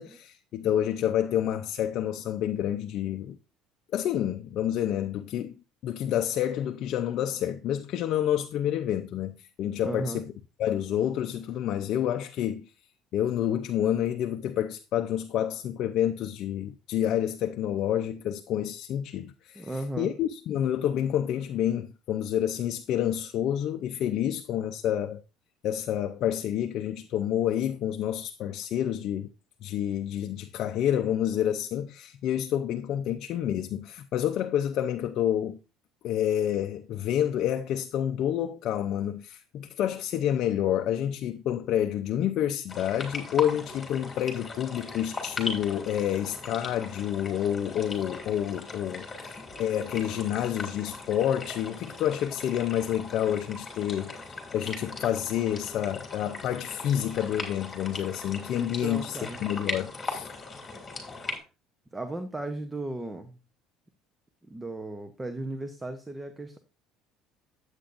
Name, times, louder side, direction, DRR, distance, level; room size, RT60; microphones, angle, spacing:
voice 1, 0.0-3.4 3.9-5.5 5.8-10.3 10.6-12.7 13.1-25.2 25.6-29.3 29.6-35.6 36.0-54.1 54.5-60.3, left 10 dB, 55° left, 0.6 m, -28 dB
voice 2, 9.8-10.2 19.6-20.1 58.6-59.4 61.9-63.4 64.5-66.6, right 2 dB, 10° right, 0.8 m, -36 dB
sound 1, 42.7-61.4, left 3 dB, 20° left, 2.8 m, -39 dB
10.0 x 8.0 x 2.6 m
cardioid pair, 125°, 0 cm